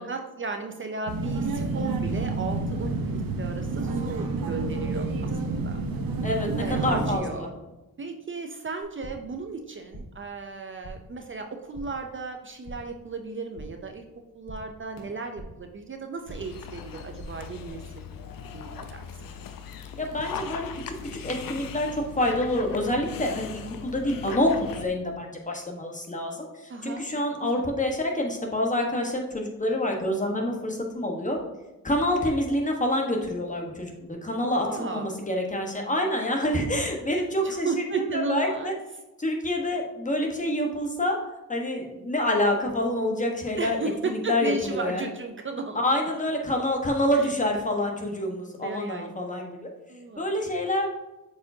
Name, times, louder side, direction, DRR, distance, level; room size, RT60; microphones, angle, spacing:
voice 1, 0.0-5.8 6.6-7.5 8.0-14.0 14.3-19.1 26.7-27.0 27.4-27.7 34.5-35.1 37.4-38.8 43.6-45.8 47.1-47.3 48.6-49.1 49.9-50.3, right 4 dB, 35° right, 5 dB, 0.6 m, -35 dB
sound 1, 1.1-7.2, right 3 dB, 75° right, 0.9 m, -29 dB
voice 2, 6.2-7.5 20.0-20.7 21.2-31.4 31.8-38.7 39.2-41.2 41.5-43.8 44.1-45.1 45.7-49.7 50.2-50.9, left 1 dB, 20° left, 1 dB, 1.3 m, -27 dB
sound 2, 8.8-9.4 9.6-10.3 10.5-11.2 11.5-12.1 12.4-13.0 13.3-13.9 14.2-15.7 16.0-16.6 16.9-17.7, right 1 dB, 50° left, 1.9 m, -45 dB
Dog, 16.3-24.9, left 7 dB, 75° left, 0.6 m, -39 dB
7.4 x 4.8 x 2.8 m, 1.1 s
cardioid pair, 85°, 35 cm